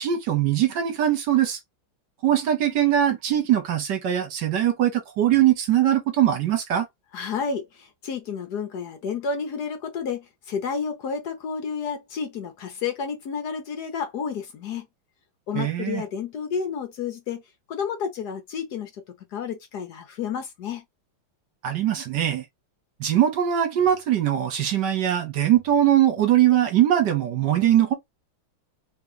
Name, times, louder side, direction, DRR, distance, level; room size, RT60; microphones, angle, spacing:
voice 1, 0.0-1.6 2.2-6.9 15.5-16.0 21.6-22.4 23.0-27.9, right 11 dB, 65° right, 1.5 m, -21 dB
voice 2, 7.1-14.9 15.5-17.4 17.7-20.8, left 6 dB, 60° left, 1.2 m, -31 dB
3.3 x 2.9 x 3.7 m
omnidirectional pair, 2.2 m